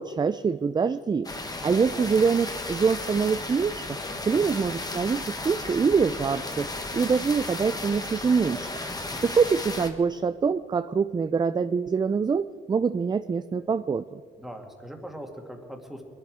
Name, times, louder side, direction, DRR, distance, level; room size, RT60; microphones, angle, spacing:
voice 1, 0.0-4.0 4.2-6.7 6.9-8.8 9.2-14.2, right 5 dB, 20° right, 13 dB, 0.3 m, -25 dB
sound 1, 1.2-9.9, left 2 dB, 20° left, 1.4 m, -34 dB
voice 2, 1.3-1.7 4.1-4.5 8.8-9.2 14.4-16.1, equal, ahead, 2 dB, 2.2 m, -42 dB
22.0 x 12.0 x 4.8 m, 2.2 s
cardioid pair, 90°, 20 cm